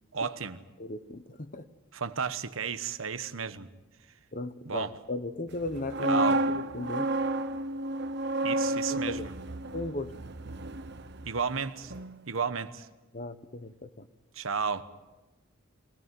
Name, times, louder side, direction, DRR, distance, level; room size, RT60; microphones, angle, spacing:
voice 1, 0.1-0.6 1.9-3.7 4.6-4.9 6.1-6.4 8.4-9.3 11.2-11.9 12.3-12.9 14.3-14.8, right 6 dB, 70° right, 1.2 m, -33 dB
voice 2, 0.8-1.6 4.3-7.1 8.9-9.3 9.7-10.1 13.1-14.1, left 2 dB, 40° left, 1.1 m, -36 dB
sound 1, 5.7-11.6 11.9-12.1, right 1 dB, 55° right, 1.0 m, -31 dB
23.5 x 18.0 x 9.4 m
head